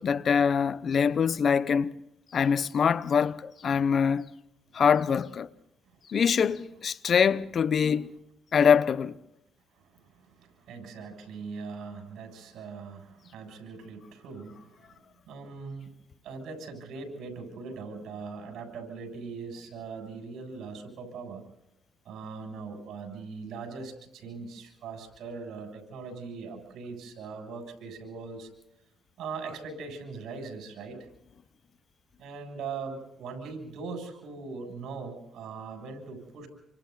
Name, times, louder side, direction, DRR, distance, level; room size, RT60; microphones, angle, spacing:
voice 1, 0.0-2.0 2.3-4.3 4.7-5.5 6.1-8.1 8.5-9.2, left 7 dB, 55° left, 0.9 m, -24 dB
voice 2, 9.7-15.0 15.3-15.9 16.2-21.4 22.0-28.5 29.2-31.0 32.2-36.5, right 4 dB, 80° right, 7.4 m, -40 dB
28.0 x 25.5 x 4.1 m
cardioid pair, 80°, 0 cm